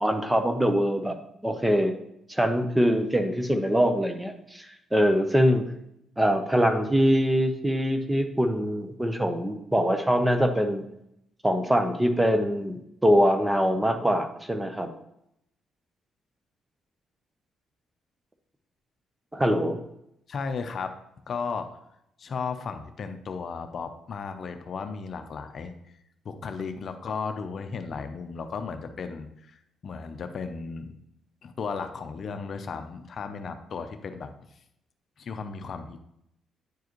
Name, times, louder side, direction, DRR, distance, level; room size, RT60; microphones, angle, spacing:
voice 1, 0.0-1.2 1.4-2.0 2.3-5.7 6.2-10.8 11.4-14.9 19.3-19.8, equal, 10° right, 7 dB, 0.8 m, -23 dB
voice 2, 20.3-20.9 21.3-21.7 22.2-25.7 26.2-30.9 31.4-34.3 35.2-36.0, left 5 dB, 55° left, 7 dB, 0.6 m, -35 dB
9.5 x 4.6 x 3.1 m, 0.78 s
cardioid pair, 90°, 0 cm